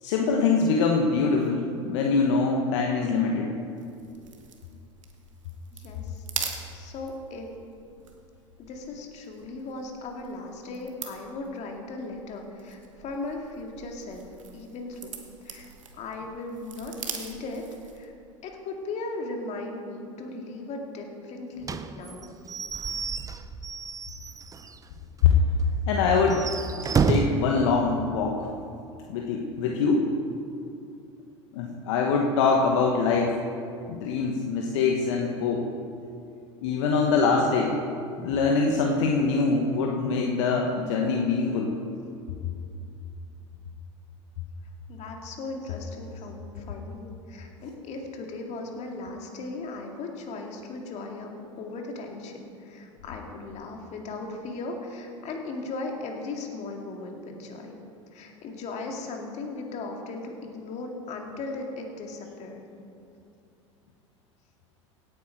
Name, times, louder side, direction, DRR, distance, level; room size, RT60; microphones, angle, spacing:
voice 1, 0.0-3.5 25.2-25.3 25.9-26.5 27.1-28.5 29.1-30.1 31.5-33.4 33.9-35.7 36.6-37.8 38.2-41.7, left 4 dB, 65° left, 1 dB, 1.2 m, -24 dB
sound 1, 3.8-18.1, right 6 dB, 85° right, 1.3 m, -43 dB
voice 2, 5.7-6.2 6.7-7.5 8.6-14.3 14.5-15.2 15.4-15.7 16.0-17.6 17.9-18.1 18.4-22.3 44.9-57.8 58.1-62.6, left 3 dB, 45° left, 2 dB, 2.2 m, -37 dB
Slam / Squeak / Wood, 21.6-24.8 25.2-25.3 25.6-25.7 26.2-27.5, right 5 dB, 20° right, 0.7 m, -29 dB
17.0 x 8.6 x 4.7 m, 2.6 s
hypercardioid pair, 80°, 16 cm